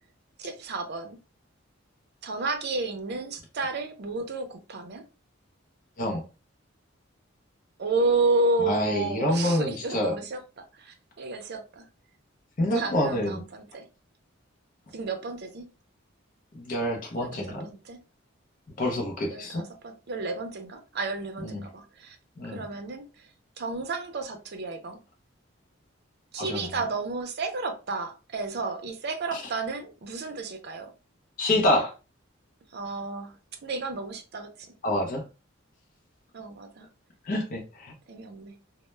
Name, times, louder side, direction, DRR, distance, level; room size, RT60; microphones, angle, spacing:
voice 1, 0.4-1.2 2.2-5.0 7.8-11.8 12.7-13.8 14.9-15.7 17.2-18.0 18.8-22.2 22.4-23.1 23.6-25.0 26.3-30.9 32.7-33.3 33.6-34.5 36.3-36.9 38.1-38.5, right 3 dB, 55° right, 0.5 m, -31 dB
voice 2, 8.6-10.1 12.6-13.4 16.5-17.7 18.8-19.6 21.4-21.7 22.4-22.6 26.4-26.7 31.4-31.9 34.8-35.2 37.3-37.9, left 1 dB, 45° left, 0.6 m, -27 dB
2.1 x 2.0 x 3.1 m
head